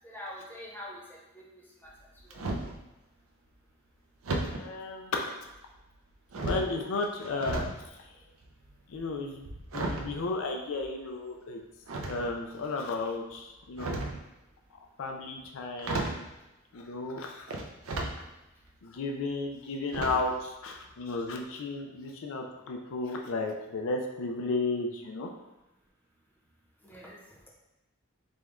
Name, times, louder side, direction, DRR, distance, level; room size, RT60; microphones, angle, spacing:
voice 1, 0.0-1.9 2.2-2.4 26.8-27.5, left 1 dB, 10° left, -4 dB, 0.8 m, -45 dB
sound 1, 1.8-2.8 4.2-4.6 5.5-6.0 6.3-7.8 8.1-11.1 11.9-12.6 13.6-14.3 15.4-15.5 15.8-16.3 17.5-18.2 18.6-18.7 19.9-20.4 20.7-20.9 21.2-21.3, right 2 dB, 75° right, 0.6 m, -35 dB
voice 2, 4.6-5.3 6.4-8.2 8.9-9.5 9.7-11.6 12.1-14.0 15.0-16.3 16.7-17.5 18.8-25.3, left 3 dB, 65° left, 2 dB, 0.4 m, -34 dB
4.9 x 2.3 x 3.6 m, 0.99 s
head